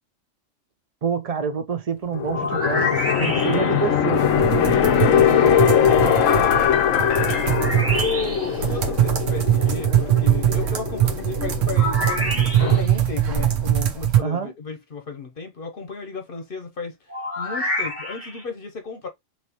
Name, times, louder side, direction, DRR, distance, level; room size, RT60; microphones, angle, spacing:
voice 1, 1.0-6.3 14.2-14.5, right 6 dB, 45° right, 0.5 m, -28 dB
sound 1, 2.1-12.8, left 9 dB, 90° left, 1.1 m, -21 dB
sound 2, 2.3-3.9 7.5-8.6 11.7-13.0 17.1-18.4, left 1 dB, 10° right, 1.0 m, -28 dB
voice 2, 3.1-3.5 5.1-5.6 6.1-19.1, left 4 dB, 50° left, 0.9 m, -34 dB
sound 3, 4.2-14.2, right 11 dB, 75° right, 1.2 m, -22 dB
4.1 x 3.1 x 2.9 m
omnidirectional pair, 1.3 m